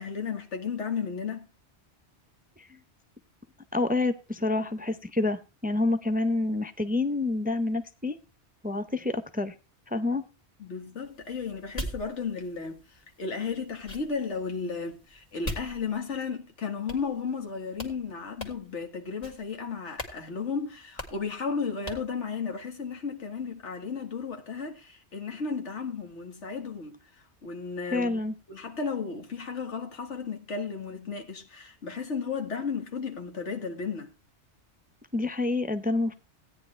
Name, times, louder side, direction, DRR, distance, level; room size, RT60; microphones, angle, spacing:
voice 1, 0.0-1.5 10.6-27.0 27.4-28.2 28.5-34.1, left 5 dB, 90° left, 1.9 m, -34 dB
voice 2, 3.7-8.2 8.6-9.5 9.9-10.2 27.9-28.3 35.1-36.1, left 2 dB, 10° right, 0.5 m, -28 dB
sound 1, 11.0-16.4 16.9-17.5 17.7-18.0 18.4-18.8 19.2-19.6 20.0-20.2 20.4-20.5 21.0-21.3 21.9-22.1, equal, 35° left, 2.0 m, -41 dB
16.5 x 9.6 x 3.2 m
omnidirectional pair, 1.2 m